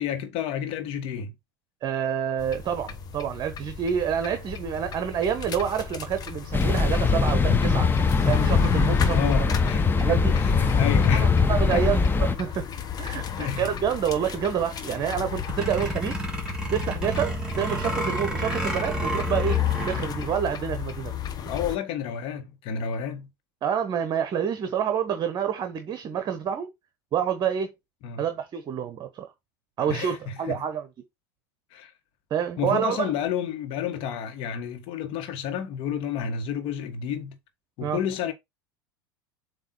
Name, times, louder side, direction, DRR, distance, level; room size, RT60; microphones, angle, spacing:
voice 1, 0.0-1.3 9.1-11.3 11.7-11.9 13.3-13.6 21.5-23.3 28.0-28.2 29.8-30.6 31.7-31.9 32.6-37.4 37.8-38.3, left 8 dB, 50° left, 1.6 m, -30 dB
voice 2, 1.8-7.9 8.3-9.5 10.0-10.3 11.2-12.7 13.0-16.2 16.7-19.6 19.9-21.2 23.6-26.7 27.1-27.7 28.2-29.3 29.8-30.9 32.3-33.1 37.8-38.0, right 8 dB, 35° right, 1.0 m, -28 dB
sound 1, 2.4-21.8, left 8 dB, 35° left, 1.1 m, -33 dB
sound 2, 6.5-12.4, left 4 dB, 15° left, 0.8 m, -22 dB
sound 3, 15.4-20.3, right 2 dB, 5° right, 3.0 m, -30 dB
7.6 x 2.9 x 4.3 m
figure-of-eight pair, 80°, 12 cm